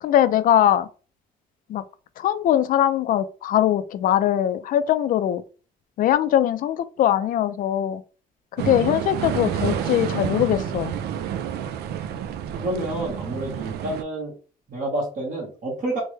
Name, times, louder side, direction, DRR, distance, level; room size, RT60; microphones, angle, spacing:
voice 1, 0.0-0.9 1.7-1.8 2.2-5.4 6.0-8.0 8.6-10.9, left 11 dB, 55° left, 0.4 m, -21 dB
sound 1, 8.6-14.0, right 9 dB, 70° right, 0.4 m, -29 dB
voice 2, 12.5-14.3 14.7-16.0, right 1 dB, 50° right, 1.4 m, -29 dB
3.3 x 2.1 x 3.2 m
cardioid pair, 110°, 17 cm